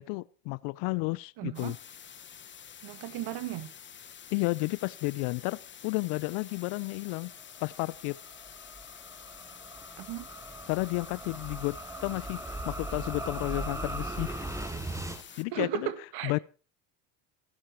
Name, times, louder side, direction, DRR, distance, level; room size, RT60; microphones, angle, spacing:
voice 1, 0.0-1.8 4.3-7.3 7.6-8.2 10.7-14.5 15.4-15.9 16.2-16.4, left 25 dB, 80° left, 0.6 m, -32 dB
voice 2, 1.4-1.8 2.8-3.7 10.0-10.3 15.3-16.3, right 13 dB, 65° right, 1.8 m, -36 dB
sound 1, 1.5-15.4, left 8 dB, 25° left, 1.0 m, -49 dB
sound 2, 7.4-15.2, right 1 dB, 5° right, 1.5 m, -39 dB
16.0 x 12.5 x 4.5 m
cardioid pair, 115°, 43 cm